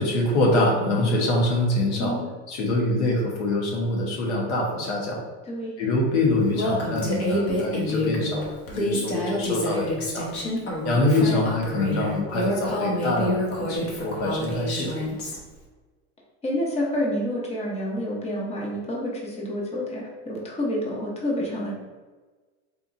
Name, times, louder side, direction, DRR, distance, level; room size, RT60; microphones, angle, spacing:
voice 1, 0.0-2.2 2.5-5.2 5.8-10.3 10.8-15.0, left 2 dB, 85° left, -2 dB, 1.2 m, -24 dB
voice 2, 2.0-2.3 5.5-5.7 7.3-7.6 8.9-9.0 16.4-21.7, left 1 dB, 20° left, -3 dB, 0.9 m, -29 dB
Female speech woman speaking, 6.5-15.4, left 1 dB, 45° left, 1.0 m, -28 dB
4.4 x 2.7 x 2.5 m, 1.3 s
supercardioid pair, 125°, 34 cm